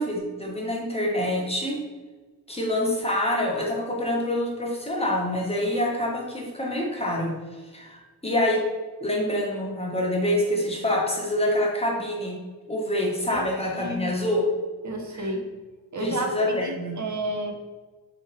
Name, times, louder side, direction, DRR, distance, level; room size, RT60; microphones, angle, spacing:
voice 1, 0.0-1.8 2.5-7.3 7.7-8.6 9.0-12.4 12.7-14.4 15.1-15.2 16.0-16.9, left 1 dB, 15° left, -2 dB, 1.0 m, -26 dB
voice 2, 13.7-14.1 14.8-15.5 15.9-16.3 16.6-17.5, right 1 dB, 40° right, 3 dB, 0.8 m, -31 dB
3.5 x 3.0 x 3.1 m, 1.3 s
cardioid pair, 50°, 47 cm